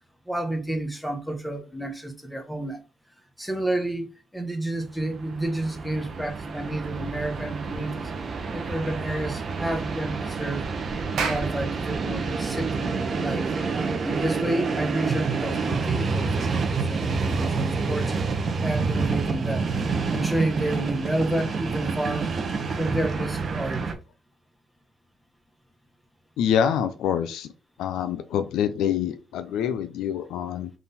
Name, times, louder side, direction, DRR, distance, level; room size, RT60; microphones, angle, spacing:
voice 1, 0.3-2.8 3.4-8.1 8.5-10.6 11.1-13.5 13.8-22.3 22.8-24.0, right 1 dB, 5° left, 0.9 m, -30 dB
Train, 5.0-23.9, right 4 dB, 45° right, 0.7 m, -28 dB
Clapping, 11.2-15.8, right 6 dB, 75° right, 0.7 m, -36 dB
voice 2, 26.4-27.5 27.8-30.7, left 9 dB, 85° left, 0.4 m, -26 dB
3.7 x 2.4 x 4.0 m
cardioid pair, 90°, 0 cm